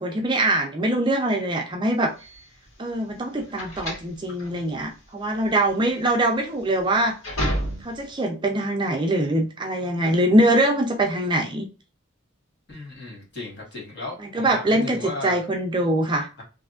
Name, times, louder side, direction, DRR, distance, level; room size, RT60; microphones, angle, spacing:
voice 1, 0.0-2.1 2.8-7.1 7.8-11.7 14.3-16.3, right 1 dB, 25° right, 0.5 m, -23 dB
sound 1, 2.2-8.2, equal, 75° left, 1.8 m, -32 dB
voice 2, 12.7-15.4 16.4-16.5, left 2 dB, 55° left, 1.6 m, -35 dB
3.3 x 2.6 x 2.4 m
head